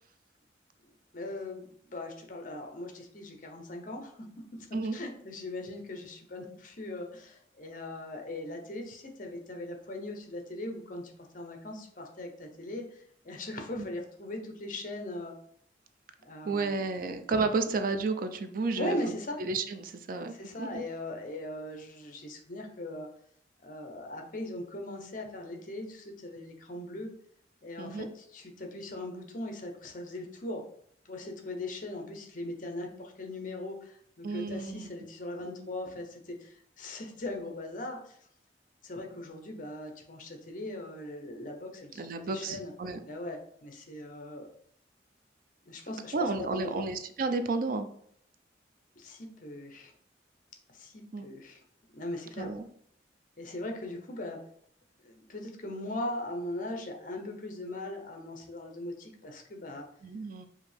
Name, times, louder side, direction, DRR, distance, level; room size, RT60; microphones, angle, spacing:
voice 1, 1.1-4.1 4.6-4.7 4.9-15.3 16.2-16.8 18.7-19.4 20.4-23.1 23.6-27.1 27.6-30.6 31.0-38.2 38.8-42.7 43.1-44.5 45.7-46.8 49.0-49.9 50.7-51.6 51.9-52.5 53.4-54.4 55.0-59.9, left 1 dB, 45° left, 3 dB, 0.8 m, -39 dB
voice 2, 16.4-19.0 19.4-20.8 27.8-28.1 34.2-34.9 41.9-43.0 46.1-47.9 51.1-51.3 52.4-52.6 60.0-60.5, right 3 dB, 50° right, 9 dB, 0.4 m, -32 dB
4.9 x 2.7 x 3.4 m, 0.64 s
head